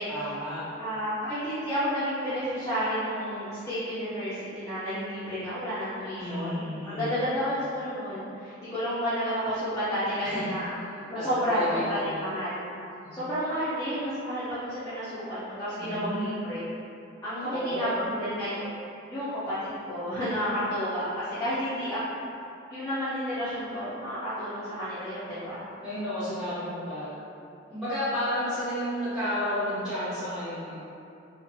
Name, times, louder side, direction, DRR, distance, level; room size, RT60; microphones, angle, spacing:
voice 1, 0.1-0.7 6.2-7.1 10.3-10.6 11.1-12.2 13.0-13.2 15.8-16.4 17.4-18.0 25.8-27.1 27.7-30.8, equal, ahead, -15 dB, 1.1 m, -32 dB
voice 2, 0.8-12.6 13.1-16.6 17.2-18.7 19.1-21.1 21.4-22.0 22.7-25.6, equal, 20° left, -16 dB, 0.5 m, -31 dB
2.5 x 2.2 x 2.6 m, 2.6 s
head